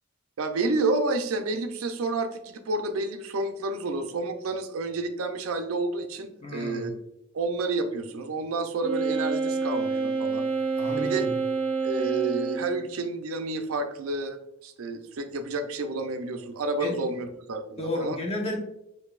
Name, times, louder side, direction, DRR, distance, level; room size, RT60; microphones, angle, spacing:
voice 1, 0.4-6.9 7.3-10.5 11.0-11.3 11.8-18.2, right 3 dB, 85° right, 7 dB, 0.5 m, -30 dB
voice 2, 6.4-7.0 10.8-11.3 16.8-17.0 17.8-18.6, left 1 dB, 30° left, 1 dB, 0.8 m, -32 dB
Wind instrument woodwind instrument, 8.8-12.9, right 4 dB, 65° right, 1.1 m, -28 dB
6.6 x 2.6 x 2.4 m, 0.82 s
head